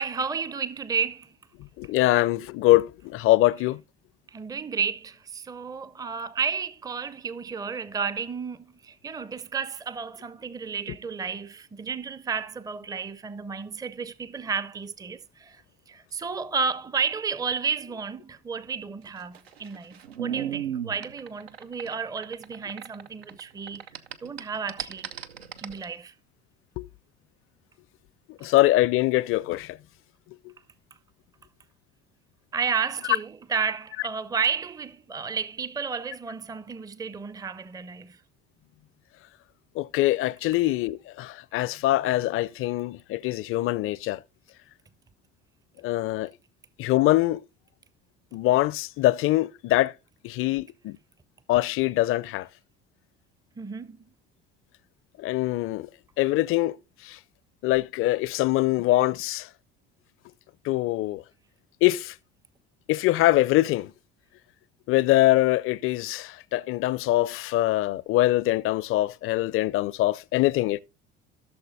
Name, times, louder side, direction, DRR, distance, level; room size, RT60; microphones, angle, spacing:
voice 1, 0.0-1.3 4.3-23.8 24.2-25.1 25.6-26.1 32.5-38.2 53.6-54.1, right 5 dB, 10° right, 0.5 m, -32 dB
voice 2, 1.8-3.8 26.8-26.9 28.4-29.8 39.8-44.2 45.8-46.3 46.8-47.4 48.3-49.9 50.2-51.0 51.5-52.5 55.2-55.9 56.2-56.7 57.1-57.2 57.6-59.5 60.6-61.2 61.8-62.1 62.9-63.9 64.9-70.8, left 16 dB, 45° left, 0.5 m, -23 dB
sound 1, 19.1-23.4 23.7-25.8, right 9 dB, 85° right, 0.6 m, -35 dB
15.5 x 6.7 x 2.6 m
figure-of-eight pair, 60°, 30 cm